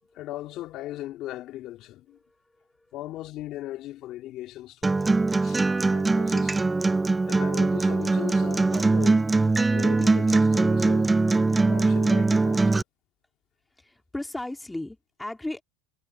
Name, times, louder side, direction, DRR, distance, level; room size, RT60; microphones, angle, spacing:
voice 1, 0.1-2.2 2.9-5.0 5.4-6.7 7.2-9.3 9.7-11.2 11.6-12.8, left 15 dB, 45° left, 3.2 m, -38 dB
voice 2, 2.1-2.9 13.8-15.6, left 1 dB, 5° left, 2.3 m, -37 dB
Acoustic guitar, 4.8-12.8, right 3 dB, 10° right, 0.3 m, -22 dB
supercardioid pair, 130°, 0 cm